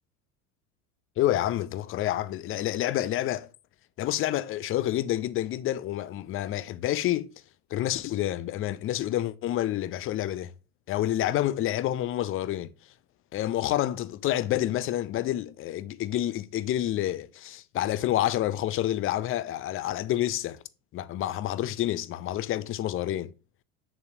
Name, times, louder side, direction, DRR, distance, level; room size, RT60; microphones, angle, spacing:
voice 1, 1.2-3.5 4.0-7.3 7.7-10.5 10.9-12.7 13.3-20.6 20.9-23.3, left 13 dB, 30° left, 0.5 m, -28 dB
7.0 x 6.6 x 2.7 m
hypercardioid pair, 75°, 44 cm